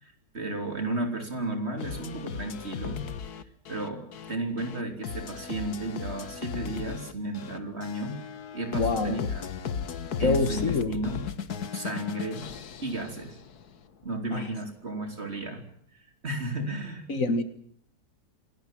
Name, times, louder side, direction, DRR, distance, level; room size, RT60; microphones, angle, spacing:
voice 1, 0.0-3.1 3.7-8.2 8.5-9.5 10.2-11.2 11.7-12.5 12.8-13.4 14.0-15.7 16.2-17.0, right 2 dB, 40° right, 5 dB, 3.8 m, -33 dB
sound 1, 1.8-13.7, left 7 dB, 70° left, 1.8 m, -36 dB
voice 2, 8.7-9.3 10.2-10.9 14.3-14.5 17.1-17.4, left 3 dB, 55° left, 11 dB, 1.9 m, -26 dB
27.0 x 18.5 x 7.5 m, 0.64 s
omnidirectional pair, 1.7 m